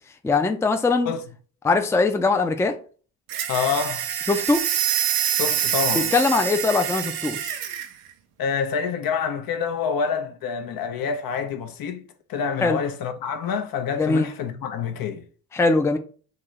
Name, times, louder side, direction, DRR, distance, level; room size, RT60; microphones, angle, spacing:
voice 1, 0.2-1.1 1.6-2.8 4.3-4.6 5.9-7.6 12.6-12.8 14.0-14.3 15.5-16.0, left 3 dB, 5° left, 0.5 m, -21 dB
sound 1, 3.3-7.9, right 10 dB, 85° right, 0.6 m, -26 dB
voice 2, 3.5-4.1 5.3-6.1 8.4-12.0 12.3-15.2, left 6 dB, 60° left, 0.8 m, -27 dB
3.8 x 2.7 x 3.2 m
hypercardioid pair, 60°, 41 cm